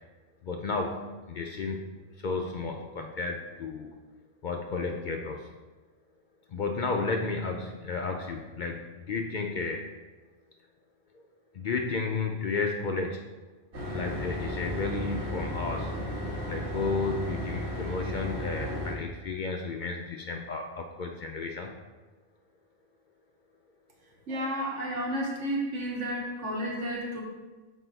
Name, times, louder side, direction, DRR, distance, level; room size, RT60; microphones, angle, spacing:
voice 1, 0.4-1.9 2.2-4.0 4.4-5.5 6.5-9.9 11.1-11.3 11.5-13.3 13.8-15.9 16.5-21.7, left 4 dB, 60° left, 3 dB, 0.5 m, -33 dB
sound 1, 13.7-18.9, left 1 dB, 70° right, 1.6 m, -34 dB
voice 2, 24.3-27.2, equal, 90° right, -1 dB, 1.5 m, -32 dB
6.1 x 4.6 x 3.9 m, 1.2 s
omnidirectional pair, 1.2 m